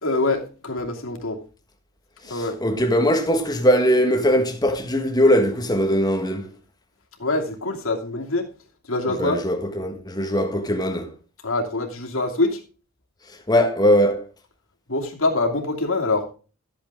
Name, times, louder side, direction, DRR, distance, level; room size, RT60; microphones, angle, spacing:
voice 1, 0.0-1.4 2.3-2.6 7.2-8.5 8.9-9.4 11.4-12.6 14.9-16.3, left 2 dB, 65° left, 2.7 m, -24 dB
voice 2, 2.3-6.5 9.2-11.1 13.5-14.3, equal, 20° left, 1.6 m, -20 dB
13.5 x 8.6 x 3.7 m
head